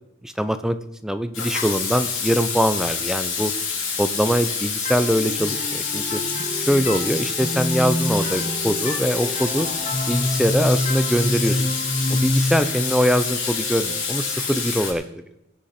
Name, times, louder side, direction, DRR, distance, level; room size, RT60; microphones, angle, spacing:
voice 1, 0.2-0.8 1.0-3.5 4.0-6.2 6.7-9.7 10.1-11.6 12.1-15.0, equal, 5° right, 10 dB, 0.6 m, -22 dB
Water tap faucet / Sink (filling or washing), 1.3-14.9, left 5 dB, 80° left, 5.1 m, -27 dB
sound 1, 4.9-14.4, left 1 dB, 30° left, 2.1 m, -27 dB
22.5 x 8.3 x 4.4 m, 0.86 s
head